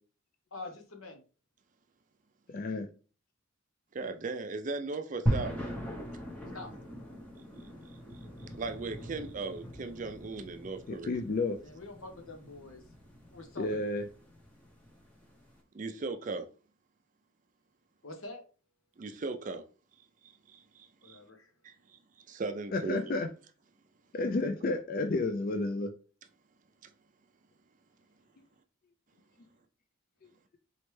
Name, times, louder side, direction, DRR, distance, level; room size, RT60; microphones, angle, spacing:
voice 1, 0.5-1.2 6.5-6.7 11.6-12.8 13.3-13.8 18.0-18.4 21.0-21.5, left 2 dB, 80° left, 1.1 m, -45 dB
voice 2, 2.5-2.9 11.1-11.6 13.6-14.0 22.7-23.3 24.1-25.9, left 2 dB, 40° left, 0.4 m, -31 dB
voice 3, 3.9-5.6 8.6-11.2 15.7-16.5 19.0-19.6 20.5-20.6 21.0-21.2 21.6-21.7 22.3-23.0, right 3 dB, 40° right, 0.4 m, -37 dB
sound 1, 5.3-15.5, equal, 5° left, 0.7 m, -39 dB
4.1 x 3.2 x 3.2 m
head